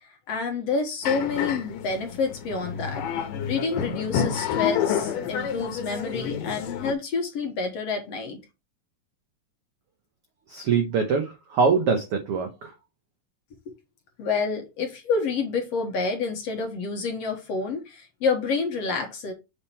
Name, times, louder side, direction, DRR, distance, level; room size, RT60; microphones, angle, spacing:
voice 1, 0.0-3.0 3.5-8.4 14.2-19.3, left 4 dB, 60° left, 2.0 m, -28 dB
sound 1, 1.0-6.9, left 8 dB, 80° left, 2.5 m, -29 dB
voice 2, 10.5-12.7, right 5 dB, 80° right, 1.3 m, -23 dB
7.2 x 3.6 x 4.4 m
omnidirectional pair, 3.9 m